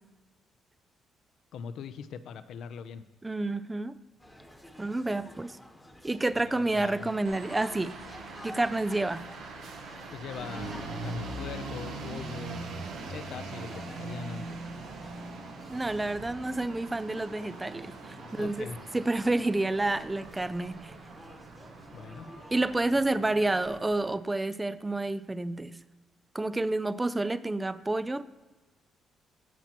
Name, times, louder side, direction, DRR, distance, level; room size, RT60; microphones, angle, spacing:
voice 1, 1.5-3.0 6.4-7.1 10.1-10.8 11.0-12.6 13.0-14.4 18.3-18.8 21.9-22.3, left 7 dB, 75° left, 12 dB, 0.5 m, -41 dB
voice 2, 3.2-4.0 4.8-5.6 6.0-8.0 8.4-9.3 15.7-18.7 18.9-20.9 22.5-25.8 26.3-28.2, right 2 dB, 15° right, 15 dB, 0.4 m, -29 dB
sound 1, 4.2-23.8, left 1 dB, 10° left, 1.1 m, -50 dB
sound 2, 7.2-24.2, right 3 dB, 85° right, 1.1 m, -42 dB
15.0 x 5.9 x 2.9 m, 1.2 s
cardioid pair, 90°, 0 cm